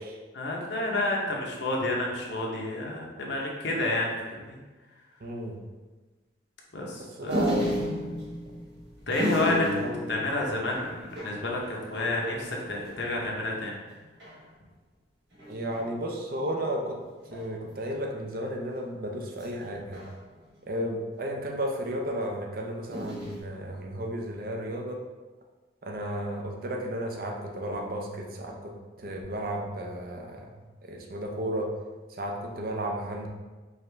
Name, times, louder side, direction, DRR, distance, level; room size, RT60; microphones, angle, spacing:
voice 1, 0.3-4.6 6.7-7.5 9.1-9.8 10.1-13.8, left 2 dB, 65° left, -2 dB, 0.8 m, -30 dB
voice 2, 5.2-5.6 7.2-7.7 9.5-10.0 15.5-17.0 17.3-20.0 20.7-25.0 25.8-28.7 29.0-30.5 30.8-31.7 32.2-33.3, right 1 dB, 50° right, 1 dB, 0.5 m, -33 dB
sound 1, 7.3-13.3 13.6-13.7 13.9-14.4 15.3-15.9 17.3-17.8 19.4-20.7 22.9-23.4, equal, 70° right, 1.5 m, -34 dB
4.7 x 2.5 x 3.3 m, 1.3 s
head